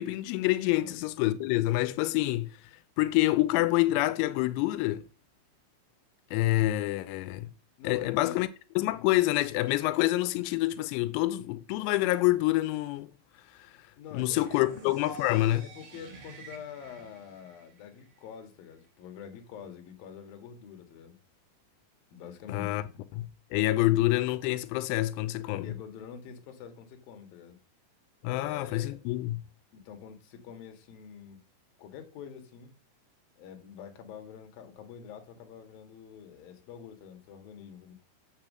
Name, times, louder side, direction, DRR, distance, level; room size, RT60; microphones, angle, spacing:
voice 1, 0.0-2.5 3.0-5.0 6.3-7.5 7.8-8.5 8.8-13.1 14.1-15.7 22.5-22.8 23.1-25.7 28.2-29.4, left 17 dB, 90° left, 3.4 m, -27 dB
voice 2, 7.8-8.4 14.0-14.3 14.6-14.7 15.6-21.2 22.1-22.8 25.6-27.6 28.3-29.0 29.7-31.4 31.8-32.7 33.4-37.9, left 7 dB, 55° left, 2.9 m, -46 dB
sound 1, 14.3-18.3, right 4 dB, 55° right, 4.8 m, -49 dB
7.5 x 7.2 x 7.4 m
omnidirectional pair, 6.0 m